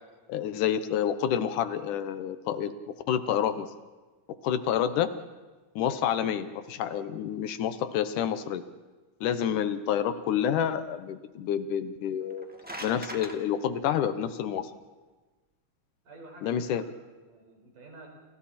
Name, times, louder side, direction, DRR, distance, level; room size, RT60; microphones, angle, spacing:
voice 1, 0.3-3.7 4.4-5.1 5.8-8.6 9.2-12.5 12.8-14.7 16.4-16.8, left 9 dB, 75° left, 11 dB, 2.5 m, -28 dB
sound 1, 12.2-13.4, right 1 dB, 5° right, 0.9 m, -40 dB
voice 2, 16.0-18.1, right 2 dB, 80° right, 1 dB, 6.6 m, -50 dB
29.0 x 29.0 x 4.4 m, 1.3 s
omnidirectional pair, 3.8 m